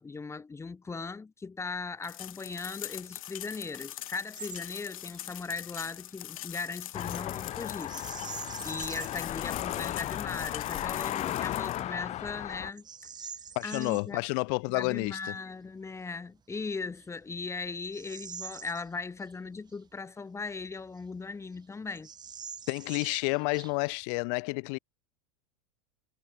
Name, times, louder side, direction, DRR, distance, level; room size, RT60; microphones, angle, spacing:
voice 1, 0.0-8.0 8.6-12.9 13.6-14.2 14.7-22.1, left 4 dB, 15° left, 3.2 m, -38 dB
sound 1, 2.0-11.8, left 14 dB, 70° left, 3.1 m, -43 dB
Bird vocalization bird call bird song, 4.4-4.7 5.0-5.2 7.8-9.3 9.8-9.9 10.5-10.9 11.5-11.6 12.2-14.1 16.2-16.3 16.9-19.3 19.7-19.8 20.5-21.3 21.5-21.6 21.9-24.0, right 7 dB, 25° right, 2.1 m, -45 dB
sound 2, 6.9-12.7, left 13 dB, 40° left, 1.7 m, -35 dB
voice 2, 13.5-15.3 22.7-24.8, left 40 dB or more, 55° left, 1.3 m, -30 dB
hypercardioid pair, 95°, 18 cm